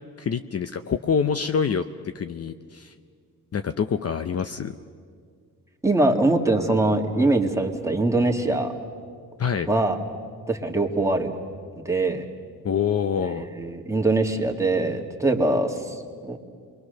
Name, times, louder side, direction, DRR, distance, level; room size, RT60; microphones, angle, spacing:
voice 1, 0.2-1.9 2.1-2.9 3.5-4.8 9.4-9.7 12.6-13.5, left 6 dB, 40° left, 9 dB, 0.7 m, -26 dB
voice 2, 5.8-8.7 9.7-10.0 10.5-11.3 11.9-12.2 13.3-16.4, right 2 dB, 10° right, 2 dB, 2.0 m, -23 dB
27.5 x 22.5 x 6.6 m, 2.1 s
cardioid pair, 100°, 37 cm